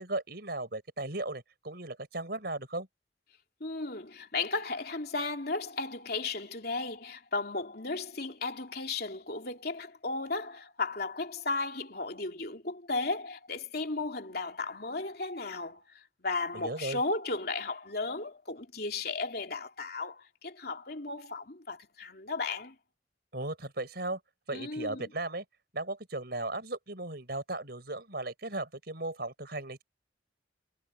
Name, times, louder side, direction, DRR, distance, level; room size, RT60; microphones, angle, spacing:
voice 1, 0.0-2.9 16.5-17.0 23.3-24.2 24.5-25.4 25.7-29.8, right 2 dB, 55° right, 5.6 m, -36 dB
voice 2, 3.6-22.7 24.5-25.1, left 3 dB, 55° left, 3.3 m, -35 dB
head